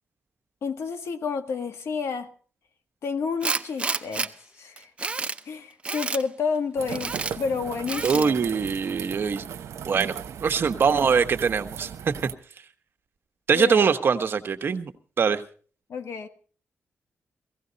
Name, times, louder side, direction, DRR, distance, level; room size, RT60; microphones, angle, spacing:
voice 1, 0.6-2.3 3.0-4.9 5.4-8.3 13.5-13.9 15.9-16.3, left 5 dB, 75° left, 8 dB, 1.5 m, -30 dB
Tools, 3.4-4.3 4.8-5.4 5.8-6.2 6.9-7.3 7.9-8.3, right 3 dB, 25° right, 0.7 m, -29 dB
sound 1, 6.8-12.3, right 8 dB, 90° right, 0.9 m, -38 dB
voice 2, 8.0-9.4 9.8-11.9 13.5-14.9 15.2-15.4, right 6 dB, 55° right, 8 dB, 1.2 m, -23 dB
17.0 x 16.0 x 4.1 m, 0.43 s
wide cardioid pair, 125°, 5 cm